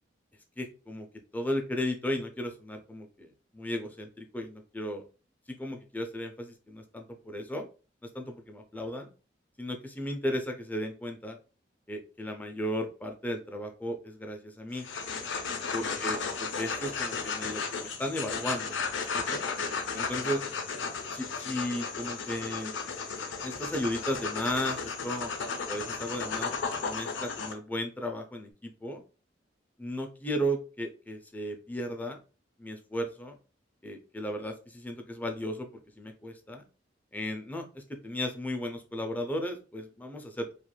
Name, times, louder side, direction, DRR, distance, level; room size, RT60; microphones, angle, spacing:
voice 1, 0.6-1.1 1.3-5.0 5.5-7.7 8.1-9.1 9.6-11.4 11.9-14.9 15.7-18.8 19.1-19.4 19.9-20.4 21.1-22.7 23.4-25.3 25.7-26.5 26.8-29.0 29.8-32.2 32.6-33.4 33.8-35.7 36.0-36.6 37.1-40.5, equal, 10° left, 3 dB, 0.4 m, -35 dB
sound 1, 14.7-27.5, left 5 dB, 75° left, 0.5 m, -34 dB
3.1 x 2.4 x 2.3 m, 0.35 s
head